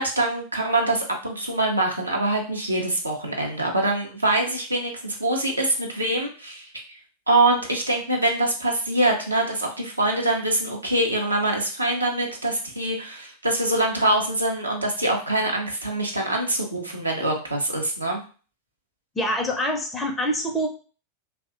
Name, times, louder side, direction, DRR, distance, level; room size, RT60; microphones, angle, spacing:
voice 1, 0.0-6.7 7.3-18.2, right 2 dB, 85° right, 0 dB, 0.5 m, -24 dB
voice 2, 19.2-20.7, equal, 10° left, 1 dB, 0.4 m, -25 dB
2.5 x 2.1 x 2.5 m, 0.37 s
figure-of-eight pair, 90°, 0 cm